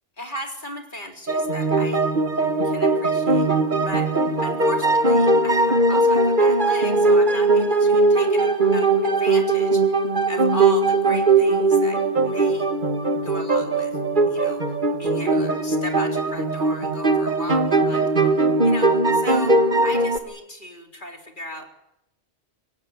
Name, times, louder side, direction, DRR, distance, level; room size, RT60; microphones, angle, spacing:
voice 1, 0.2-2.0 2.6-3.5 3.8-4.1 4.4-9.9 10.3-12.7 13.2-14.0 14.3-14.6 15.0-17.6 17.9-18.3 18.6-19.6 19.8-21.7, equal, 50° left, 2 dB, 3.9 m, -36 dB
sound 1, 1.3-20.2, right 2 dB, 50° right, 1.8 m, -20 dB
24.5 x 17.0 x 9.4 m, 0.85 s
omnidirectional pair, 1.0 m